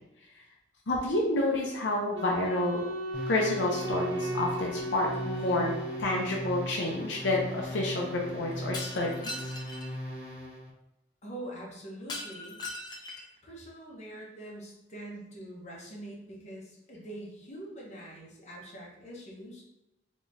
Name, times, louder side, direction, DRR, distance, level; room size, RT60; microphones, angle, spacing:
voice 1, 0.9-2.8 3.3-5.7 6.0-9.4, left 2 dB, 75° left, -1 dB, 0.6 m, -29 dB
Wind instrument woodwind instrument, 2.1-6.6, right 1 dB, 85° right, 0.6 m, -36 dB
sound 1, 3.1-10.7, equal, 15° right, 1.5 m, -39 dB
Shatter, 8.7-9.9 12.1-13.4, left 2 dB, 25° left, 0.5 m, -40 dB
voice 2, 11.2-12.6 13.4-19.6, right 1 dB, 40° left, -3 dB, 1.0 m, -44 dB
3.8 x 2.9 x 2.6 m, 0.91 s
head